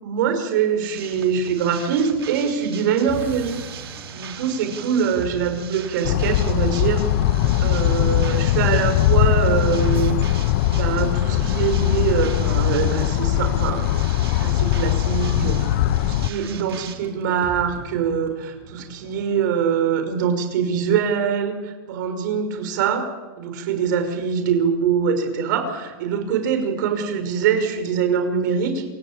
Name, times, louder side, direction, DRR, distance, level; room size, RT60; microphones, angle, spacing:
voice 1, 0.0-3.5 4.1-7.0 7.6-10.2 10.7-13.9 14.4-15.6 16.0-23.1 23.4-28.8, right 7 dB, 50° right, 7 dB, 5.7 m, -23 dB
sound 1, 0.8-16.9, right 8 dB, 80° right, 4.0 m, -40 dB
sound 2, 3.1-19.4, right 4 dB, 15° right, 3.9 m, -40 dB
sound 3, 6.0-16.3, left 14 dB, 40° left, 0.8 m, -20 dB
27.5 x 17.0 x 9.0 m, 1.3 s
supercardioid pair, 160°, 13 cm